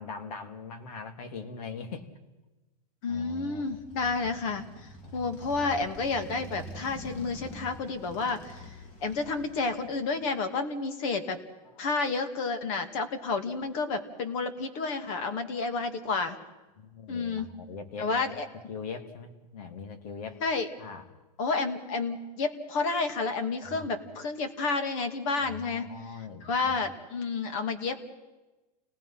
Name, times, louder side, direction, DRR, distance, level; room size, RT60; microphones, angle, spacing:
voice 1, 0.0-2.1 3.1-3.8 5.0-5.3 16.8-18.4 18.7-20.4 20.8-21.0 23.6-24.1 25.5-26.8, left 5 dB, 70° left, 6 dB, 3.0 m, -41 dB
voice 2, 3.0-8.7 9.0-11.4 11.8-16.4 17.1-17.5 18.0-18.5 20.4-20.7 21.4-25.8 26.4-28.0, left 4 dB, 55° left, 8 dB, 2.6 m, -30 dB
Motorcycle, 3.6-10.3, left 1 dB, 35° left, 3.6 m, -45 dB
29.5 x 19.0 x 5.9 m, 1.1 s
supercardioid pair, 140°, 21 cm